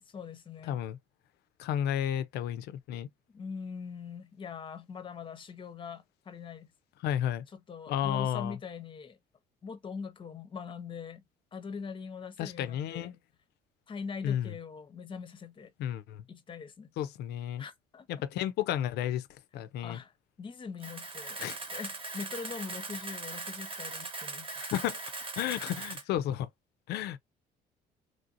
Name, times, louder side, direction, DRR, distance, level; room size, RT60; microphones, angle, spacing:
voice 1, 0.0-0.8 3.3-6.7 7.5-9.2 9.6-11.2 11.5-13.1 13.9-15.7 16.3-16.9 17.6-18.1 19.8-24.6 25.4-25.5, left 5 dB, 30° left, 0.6 m, -42 dB
voice 2, 0.7-1.0 1.6-3.1 7.0-7.4 7.9-8.6 12.4-13.1 14.2-14.5 15.8-16.2 17.0-17.6 18.1-19.3 19.5-20.0 21.4-21.6 24.6-25.0 25.4-26.5 26.9-27.2, left 11 dB, 75° left, 0.4 m, -32 dB
Camera, 20.8-26.0, right 3 dB, 35° right, 1.0 m, -40 dB
3.2 x 2.6 x 2.5 m
cardioid pair, 110°, 17 cm